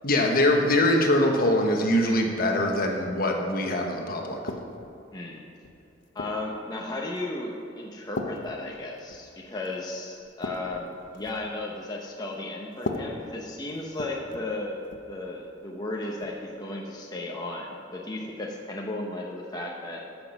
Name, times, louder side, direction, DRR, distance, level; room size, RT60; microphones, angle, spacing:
voice 1, 0.0-4.4, left 1 dB, 50° left, 2 dB, 1.3 m, -23 dB
sound 1, 4.5-5.0 5.6-6.5 7.2-7.4 8.1-9.3 9.7-9.8 10.2-11.5 12.7-14.5 14.8-15.1 16.2-16.4, left 2 dB, 70° left, 0.8 m, -37 dB
voice 2, 5.1-5.4 6.1-20.1, left 2 dB, 20° left, -1 dB, 0.8 m, -35 dB
13.5 x 6.1 x 5.3 m, 2.8 s
head